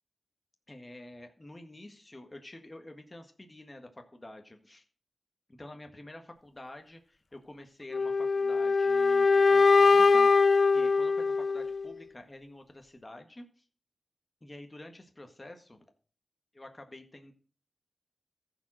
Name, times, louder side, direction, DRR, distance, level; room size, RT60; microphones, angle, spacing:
voice 1, 0.7-4.8 5.6-10.3 10.7-13.6 14.4-15.8 16.5-17.3, left 1 dB, 30° left, 5 dB, 1.5 m, -48 dB
sound 1, 7.9-11.9, left 4 dB, 60° left, 0.4 m, -22 dB
14.5 x 5.1 x 6.2 m, 0.42 s
cardioid pair, 50°, 0 cm